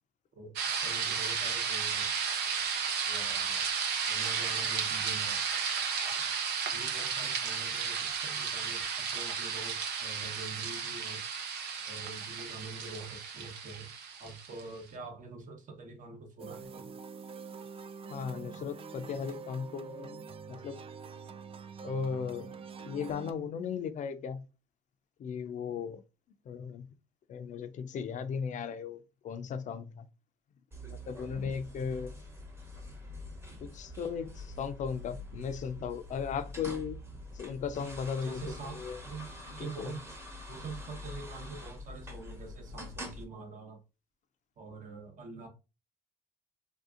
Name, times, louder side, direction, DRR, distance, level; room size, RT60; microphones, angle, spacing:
voice 1, 0.3-2.1 3.1-3.7 4.1-5.4 6.2-6.3 6.7-8.8 9.1-11.2 11.9-13.9 14.2-16.9 38.2-40.0 40.5-43.8 44.6-45.5, right 3 dB, 50° right, 1.0 m, -45 dB
sound 1, 0.6-14.6, right 6 dB, 80° right, 0.7 m, -33 dB
sound 2, 16.4-23.3, right 5 dB, 35° right, 0.4 m, -45 dB
voice 2, 18.1-20.8 21.8-22.5 22.8-24.4 25.2-26.0 26.5-26.9 27.3-30.0 30.9-32.1 33.6-37.0 37.3-38.4 38.7-39.0 39.8-39.9, left 6 dB, 45° left, 0.5 m, -36 dB
sound 3, 30.7-43.2, left 1 dB, 15° right, 1.0 m, -45 dB
3.4 x 2.7 x 2.4 m
cardioid pair, 110°, 17 cm